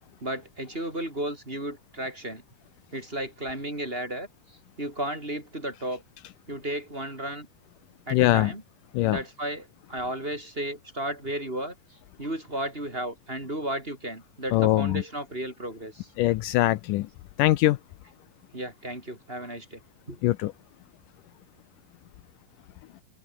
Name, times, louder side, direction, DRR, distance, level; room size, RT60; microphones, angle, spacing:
voice 1, 0.2-2.4 2.9-4.3 4.8-6.0 6.5-7.5 8.1-8.6 9.0-11.7 12.2-16.1 18.5-19.8 20.1-20.2, right 1 dB, 15° right, 5.2 m, -34 dB
voice 2, 8.1-8.5 8.9-9.2 14.5-15.0 16.2-17.1 17.4-17.8 20.2-20.5, left 16 dB, 80° left, 2.2 m, -22 dB
omnidirectional pair, 3.9 m